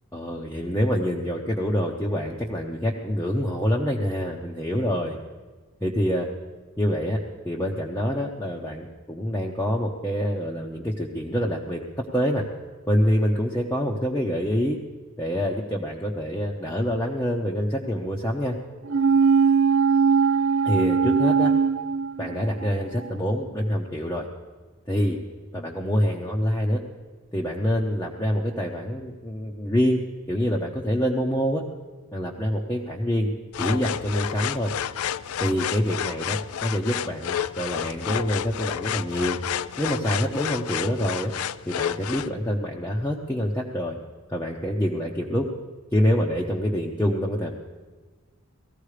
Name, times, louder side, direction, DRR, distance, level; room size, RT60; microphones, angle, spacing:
voice 1, 0.1-5.2 5.8-6.3 6.8-7.2 7.4-12.4 12.9-14.8 15.2-18.6 20.6-21.5 22.2-24.3 24.9-25.2 25.5-26.8 27.3-30.0 30.3-31.6 32.1-33.3 33.6-34.7 35.4-39.4 39.8-41.3 41.7-44.0 44.3-45.5 45.9-47.5, equal, 10° left, -3 dB, 0.9 m, -26 dB
sound 1, 18.9-22.7 23.0-23.1, right 5 dB, 65° right, 0.6 m, -20 dB
sound 2, 33.5-42.3, left 9 dB, 75° left, 0.4 m, -30 dB
18.0 x 14.5 x 5.0 m, 1.4 s
head